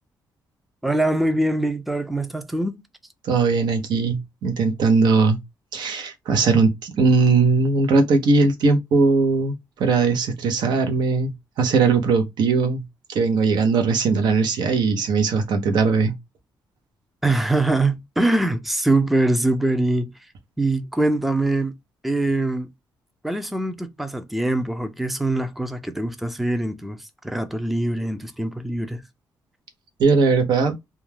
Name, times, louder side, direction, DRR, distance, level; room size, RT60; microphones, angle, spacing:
voice 1, 0.8-2.8 17.2-20.1 20.6-21.7 22.0-22.7 23.2-29.0, right 2 dB, ahead, 0.4 m, -23 dB
voice 2, 3.2-5.4 5.7-12.8 13.1-16.1 30.0-30.7, right 4 dB, 75° right, 0.7 m, -19 dB
2.3 x 2.2 x 3.2 m
cardioid pair, 110°, 8 cm